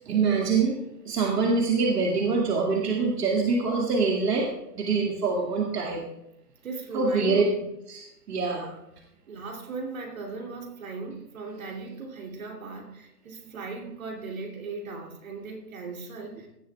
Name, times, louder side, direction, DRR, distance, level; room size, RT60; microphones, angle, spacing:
voice 1, 0.1-0.8 1.1-4.5 4.7-6.0 6.9-7.4 7.9-8.0 8.3-8.7, right 4 dB, 70° right, -1 dB, 2.3 m, -24 dB
voice 2, 6.6-7.5 9.3-16.5, right 4 dB, 55° right, 0 dB, 3.0 m, -37 dB
17.5 x 11.5 x 2.4 m, 0.86 s
hypercardioid pair, 175°, 49 cm